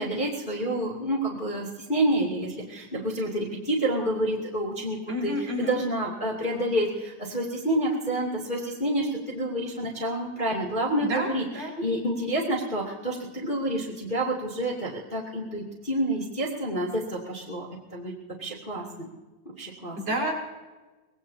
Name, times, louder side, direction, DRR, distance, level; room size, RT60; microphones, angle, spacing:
voice 1, 0.0-5.3 5.6-11.4 11.8-17.7 17.9-18.1 18.4-19.1 19.5-20.0, right 1 dB, 15° left, -4 dB, 2.3 m, -28 dB
voice 2, 5.1-5.8 11.0-11.7 20.0-20.3, equal, 45° right, -3 dB, 5.7 m, -30 dB
25.0 x 19.5 x 2.8 m, 1.2 s
omnidirectional pair, 3.6 m